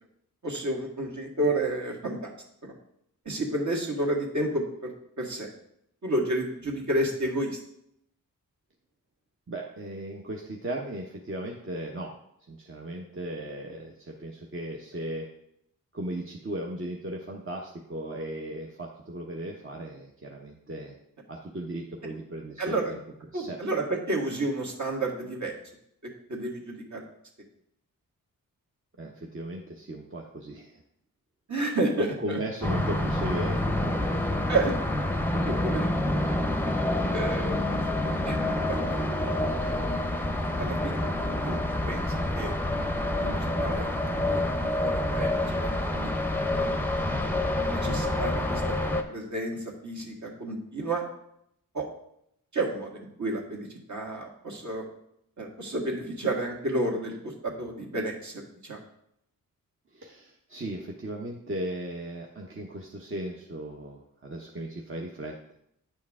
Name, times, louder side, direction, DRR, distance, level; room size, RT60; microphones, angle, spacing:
voice 1, 0.4-2.3 2.6-2.7 3.3-4.9 5.2-5.5 6.0-7.5 22.6-22.9 23.3-25.6 26.3-27.0 31.5-32.4 34.5-34.7 35.3-35.9 37.1-37.6 38.2-38.4 38.7-39.4 40.6-40.9 41.5-41.6 41.9-42.5 43.2-44.0 44.3-46.1 46.6-46.7 47.6-48.7 49.1-51.1 51.7-51.9 52.5-54.9 55.4-58.8, right 2 dB, 55° right, -1 dB, 1.8 m, -31 dB
voice 2, 9.5-12.1 12.5-15.3 15.9-20.9 21.3-23.0 23.3-23.6 29.0-30.8 32.0-34.4 37.5-37.6 59.9-65.6, right 1 dB, 35° right, 0 dB, 0.9 m, -37 dB
sound 1, 32.6-49.0, left 1 dB, 5° left, 0.7 m, -27 dB
8.8 x 4.5 x 3.6 m, 0.75 s
cardioid pair, 55°, 35 cm